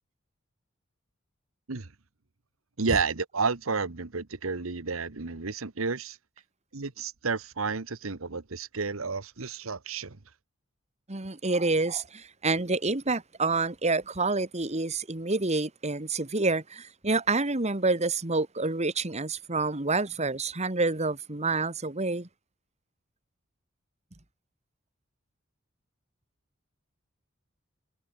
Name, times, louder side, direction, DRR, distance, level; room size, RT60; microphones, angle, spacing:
voice 1, 2.8-6.2 6.7-10.2, right 4 dB, 80° right, 1.3 m, -31 dB
voice 2, 11.1-22.3, right 3 dB, 35° right, 2.0 m, -28 dB
head